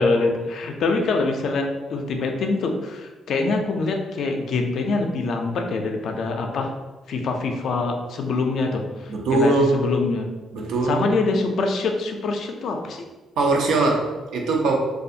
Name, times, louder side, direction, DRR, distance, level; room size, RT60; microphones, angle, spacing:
voice 1, 0.0-6.7 7.1-10.3 10.8-13.0, left 3 dB, 65° left, 3 dB, 0.3 m, -24 dB
voice 2, 9.1-9.8 10.5-11.0 13.4-14.7, right 3 dB, 80° right, 0 dB, 0.5 m, -21 dB
2.4 x 2.3 x 2.7 m, 1.2 s
cardioid pair, 90°, 0 cm